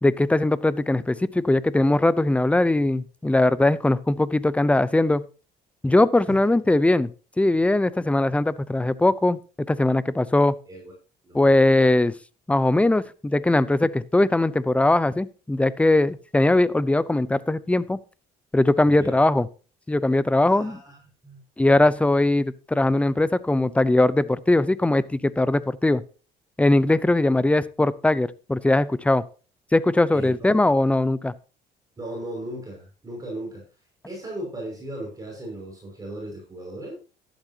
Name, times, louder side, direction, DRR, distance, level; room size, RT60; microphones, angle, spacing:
voice 1, 0.0-5.2 5.8-7.1 7.4-9.4 9.7-10.6 11.3-12.1 12.5-18.0 18.5-19.5 19.9-20.8 21.6-26.0 26.6-29.2 29.7-31.3, left 2 dB, 5° left, 17 dB, 0.6 m, -20 dB
voice 2, 18.8-19.2 20.4-21.4 30.1-30.6 32.0-33.6 34.1-36.9, right 1 dB, 20° right, -2 dB, 5.8 m, -37 dB
12.5 x 11.5 x 2.9 m, 0.35 s
cardioid pair, 110°, 17 cm